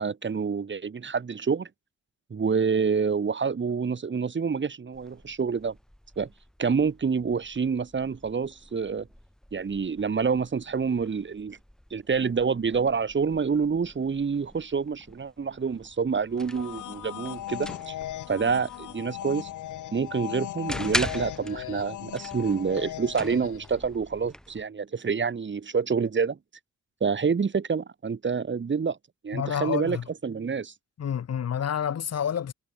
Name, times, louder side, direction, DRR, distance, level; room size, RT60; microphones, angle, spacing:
voice 1, 0.0-1.7 2.3-5.7 6.2-6.3 6.6-9.1 9.5-11.6 11.9-17.9 18.3-19.5 19.9-26.4 27.0-29.0 29.2-30.0 30.2-30.7, right 5 dB, 40° right, 8.0 m, -27 dB
sound 1, 4.9-24.7, equal, ahead, 7.2 m, -42 dB
sound 2, 16.4-23.8, left 13 dB, 75° left, 2.4 m, -38 dB
voice 2, 29.3-30.0 31.0-32.5, left 8 dB, 55° left, 4.9 m, -29 dB
cardioid pair, 90°, 30 cm